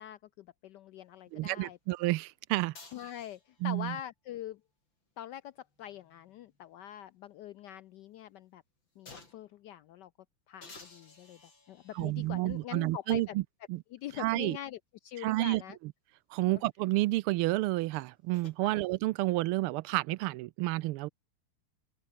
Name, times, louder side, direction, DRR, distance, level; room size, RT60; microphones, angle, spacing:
voice 1, 0.0-1.8 2.9-4.6 5.2-8.6 9.0-10.1 10.5-11.4 11.7-13.3 13.9-15.8 16.4-16.6 18.6-18.8, left 11 dB, 80° left, 1.0 m, -44 dB
voice 2, 1.3-2.8 3.6-4.0 12.0-13.4 13.7-13.8 14.2-14.6 15.2-15.6 16.3-21.1, right 18 dB, 90° right, 1.5 m, -30 dB
sound 1, 2.7-3.7 5.5-7.0 7.4-7.5 9.1-9.6 10.6-12.2 13.1-13.2 17.8-18.6, left 3 dB, 60° left, 6.8 m, -55 dB
open air
omnidirectional pair, 2.3 m